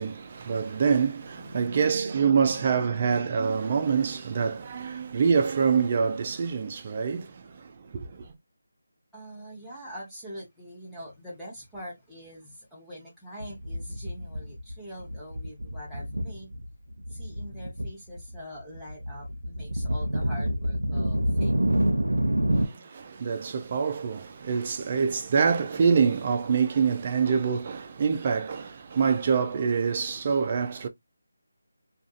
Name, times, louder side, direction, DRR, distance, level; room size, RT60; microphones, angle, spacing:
voice 1, 0.0-8.3 22.6-30.9, right 6 dB, 30° right, 0.4 m, -26 dB
voice 2, 1.3-3.7 9.1-16.5 17.1-22.0 22.4-22.9, equal, ahead, 1.0 m, -43 dB
sound 1, 13.4-14.7 15.0-16.6 17.0-17.9 18.2-22.7, right 1 dB, 85° right, 0.7 m, -27 dB
2.6 x 2.4 x 2.3 m
figure-of-eight pair, 170°, 0 cm